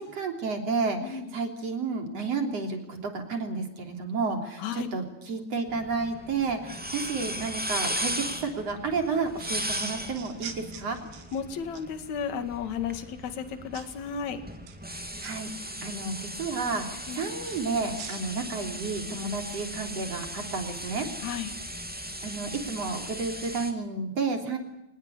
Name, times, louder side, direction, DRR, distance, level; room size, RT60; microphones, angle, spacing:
voice 1, 0.0-11.0 14.9-15.5 15.8-16.9 17.1-21.1 22.2-24.6, right 4 dB, 40° right, 4 dB, 4.1 m, -31 dB
voice 2, 1.0-1.3 4.6-4.9 11.3-14.4 17.1-17.2 21.2-21.5, left 7 dB, 50° left, 9 dB, 3.0 m, -33 dB
sound 1, 5.7-23.7, equal, 5° right, 1.3 m, -37 dB
sound 2, 9.4-11.9 13.7-14.0 14.5-15.3 17.4-19.3, right 7 dB, 85° right, 4.6 m, -44 dB
26.0 x 20.0 x 8.4 m, 0.89 s
omnidirectional pair, 4.6 m